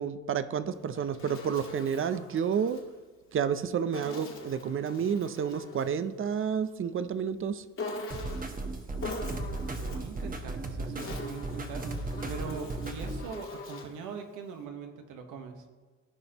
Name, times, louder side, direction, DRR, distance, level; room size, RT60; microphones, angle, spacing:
voice 1, 0.0-2.8 3.3-7.6, right 7 dB, 45° right, 13 dB, 0.6 m, -30 dB
Insect, 0.7-2.9 3.9-6.0 7.8-8.6 9.0-10.1 10.8-14.0, left 2 dB, 45° left, 1.8 m, -42 dB
sound 1, 8.1-13.2, right 2 dB, 30° right, 1.1 m, -36 dB
voice 2, 9.2-15.6, right 5 dB, 85° right, 5 dB, 1.2 m, -42 dB
14.5 x 5.3 x 2.9 m, 1.4 s
cardioid pair, 90°, 30 cm